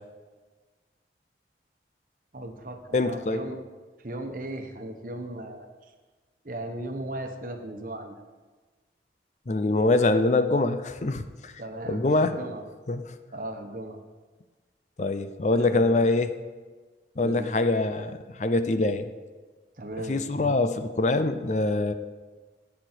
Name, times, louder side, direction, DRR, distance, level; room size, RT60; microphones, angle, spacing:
voice 1, 2.3-3.6 4.0-5.9 6.4-8.2 11.6-12.6 13.3-14.0 15.5-16.1 17.2-17.5 19.8-20.2, right 1 dB, 50° right, 5 dB, 1.1 m, -37 dB
voice 2, 2.9-3.4 9.5-11.5 11.9-12.4 12.9-13.0 15.0-16.3 17.2-19.0 20.1-21.9, left 2 dB, 40° left, 10 dB, 0.5 m, -24 dB
17.5 x 6.3 x 4.5 m, 1.3 s
head